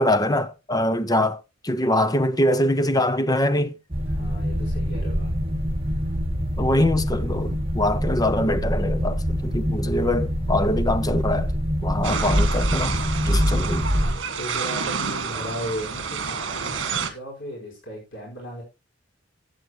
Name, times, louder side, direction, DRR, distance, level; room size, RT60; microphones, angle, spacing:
voice 1, 0.0-3.7 6.6-11.5 11.8-13.0 13.2-13.9, left 1 dB, 20° left, 0.9 m, -23 dB
sound 1, 3.9-14.2, equal, 30° right, 2.4 m, -25 dB
voice 2, 4.1-5.4 6.7-6.9 14.4-18.6, equal, 70° left, 5.3 m, -36 dB
sound 2, 12.0-17.1, right 5 dB, 75° right, 2.0 m, -29 dB
14.5 x 9.2 x 3.1 m
head